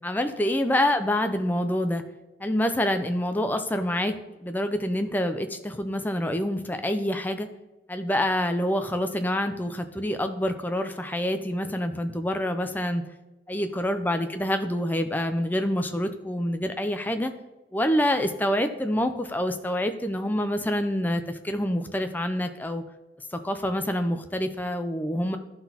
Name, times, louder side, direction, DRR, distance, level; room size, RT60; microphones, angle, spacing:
voice 1, 0.0-2.0 2.4-7.5 7.9-13.0 13.5-17.3 17.7-22.8 23.3-25.4, left 1 dB, 10° left, 7 dB, 0.4 m, -27 dB
11.5 x 4.0 x 2.8 m, 1.1 s
head